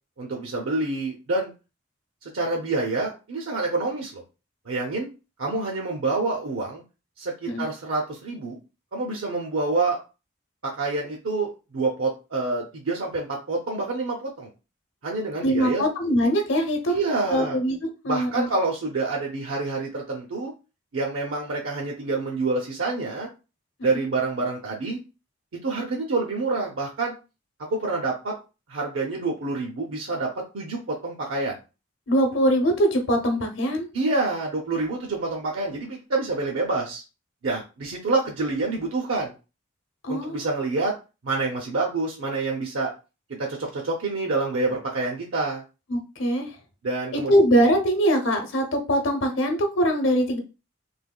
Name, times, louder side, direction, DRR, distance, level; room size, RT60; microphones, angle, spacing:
voice 1, 0.2-1.5 2.2-4.2 4.7-5.1 5.4-6.8 7.2-8.6 8.9-10.0 10.6-14.5 15.0-15.8 16.9-17.6 18.1-20.5 20.9-23.3 23.8-25.0 25.5-27.1 27.6-28.3 28.7-31.6 33.9-37.0 37.4-39.3 40.1-40.9 41.2-42.9 43.4-45.6 46.8-47.3, right 3 dB, 75° right, -1 dB, 0.6 m, -27 dB
voice 2, 15.4-17.0 17.3-18.5 23.9-24.0 32.1-33.9 40.0-40.4 45.9-46.6 47.1-50.4, equal, 65° left, 4 dB, 0.8 m, -22 dB
3.3 x 3.0 x 2.2 m, 0.30 s
head